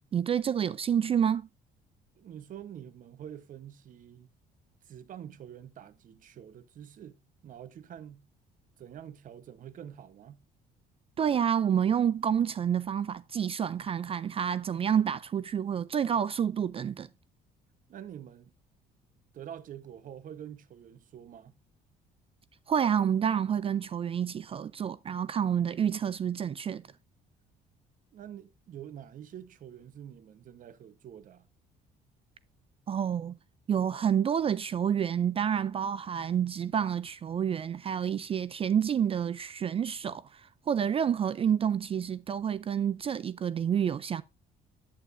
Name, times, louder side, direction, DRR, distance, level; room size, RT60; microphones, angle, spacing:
voice 1, 0.1-1.5 11.2-17.1 22.7-26.8 32.9-33.4 33.7-44.2, right 8 dB, 35° right, 0.4 m, -28 dB
voice 2, 2.2-4.3 4.8-8.2 8.8-10.4 17.9-18.5 19.3-21.5 28.1-31.5, right 10 dB, 50° right, 1.0 m, -46 dB
8.8 x 8.4 x 2.5 m
cardioid pair, 110°, 17 cm